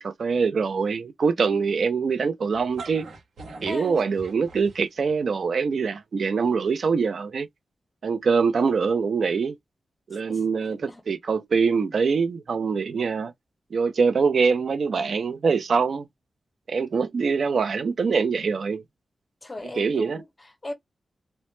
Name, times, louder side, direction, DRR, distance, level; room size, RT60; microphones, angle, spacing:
voice 1, 0.0-3.1 3.6-7.5 8.0-9.6 10.1-13.3 13.7-16.1 16.7-18.8 19.8-20.2, right 5 dB, 60° right, 0.3 m, -24 dB
sound 1, 2.5-5.1, right 3 dB, 85° right, 0.7 m, -42 dB
voice 2, 3.7-4.1 10.2-11.0 19.4-20.7, left 1 dB, 20° left, 0.6 m, -37 dB
2.0 x 2.0 x 2.9 m
wide cardioid pair, 150°, 0 cm